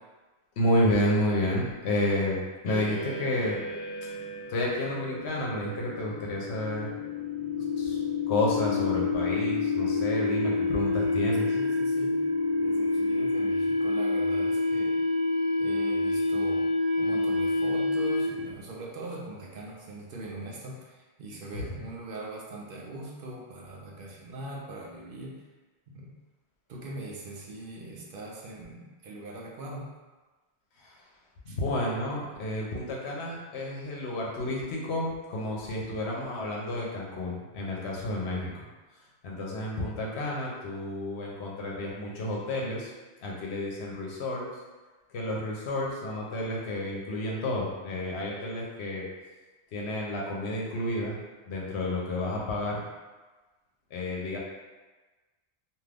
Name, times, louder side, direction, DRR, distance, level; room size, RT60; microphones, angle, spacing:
voice 1, 0.6-3.6 4.5-6.9 7.8-8.0 8.3-11.5 21.5-21.6 30.8-30.9 31.5-38.5 39.2-42.9 43.2-44.4 45.1-49.1 49.7-51.2 51.5-52.8 53.9-54.4, left 1 dB, 80° left, -3 dB, 0.9 m, -30 dB
sound 1, 2.7-18.6, left 3 dB, 55° left, 0.4 m, -28 dB
voice 2, 11.4-12.3 12.6-15.0 15.6-16.7 17.0-25.4 25.9-26.1 26.7-29.9 31.5-31.6, right 2 dB, 60° right, -2 dB, 0.6 m, -41 dB
2.6 x 2.4 x 3.3 m, 1.2 s
omnidirectional pair, 1.1 m